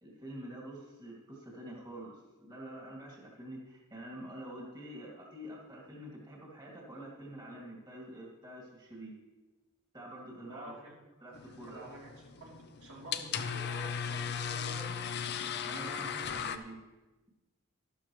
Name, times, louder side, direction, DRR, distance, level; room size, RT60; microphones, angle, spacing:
voice 1, 0.0-9.2 9.9-10.7 11.2-11.9 15.6-16.8, right 1 dB, 20° right, -4 dB, 2.3 m, -46 dB
voice 2, 10.5-11.0 11.5-12.1 12.4-15.1, right 1 dB, 80° right, -3 dB, 3.0 m, -49 dB
sound 1, 11.3-16.6, left 7 dB, 50° left, 0.6 m, -37 dB
12.5 x 12.5 x 3.1 m, 1.2 s
head